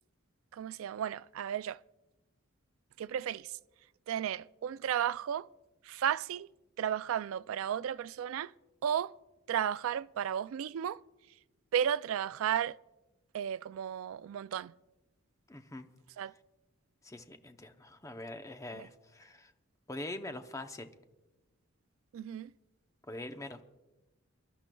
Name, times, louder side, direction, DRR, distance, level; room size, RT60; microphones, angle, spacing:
voice 1, 0.5-1.8 3.0-3.6 4.1-5.5 5.8-6.5 6.8-8.5 8.8-9.1 9.5-11.0 11.7-12.8 13.3-14.7 16.2-16.3 18.7-18.9 22.1-22.5, right 9 dB, 75° right, 0.3 m, -34 dB
voice 2, 15.5-15.9 17.0-19.5 19.9-20.9 23.1-23.6, left 2 dB, 15° left, 0.6 m, -43 dB
28.0 x 11.5 x 2.3 m
head